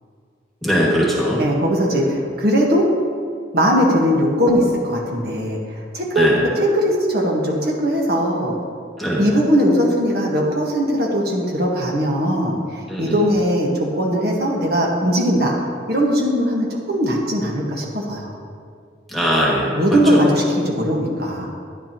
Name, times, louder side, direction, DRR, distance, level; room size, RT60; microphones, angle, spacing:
voice 1, 0.6-1.4 1.9-2.2 6.1-6.4 9.0-9.4 12.9-13.1 19.1-19.7, equal, ahead, -5 dB, 2.0 m, -20 dB
voice 2, 1.4-2.9 3.5-6.3 6.6-8.6 9.2-15.5 15.9-18.3 19.7-21.5, equal, 55° right, -2 dB, 1.4 m, -19 dB
13.0 x 10.5 x 3.0 m, 2.2 s
head